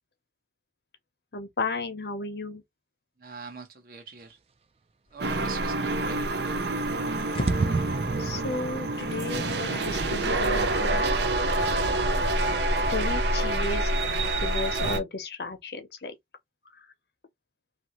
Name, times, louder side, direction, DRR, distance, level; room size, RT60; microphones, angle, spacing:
voice 1, 1.3-2.6 8.2-11.1 12.9-16.1, left 3 dB, 70° left, 0.8 m, -34 dB
voice 2, 3.2-4.4 5.1-6.2, right 4 dB, 55° right, 0.9 m, -42 dB
sound 1, 5.2-15.0, right 2 dB, 80° right, 0.6 m, -27 dB
sound 2, 6.4-6.5 6.7-6.8 7.5-9.3, right 3 dB, 35° right, 0.3 m, -30 dB
sound 3, 6.6-12.6, left 1 dB, 30° left, 0.6 m, -43 dB
2.7 x 2.6 x 3.0 m
head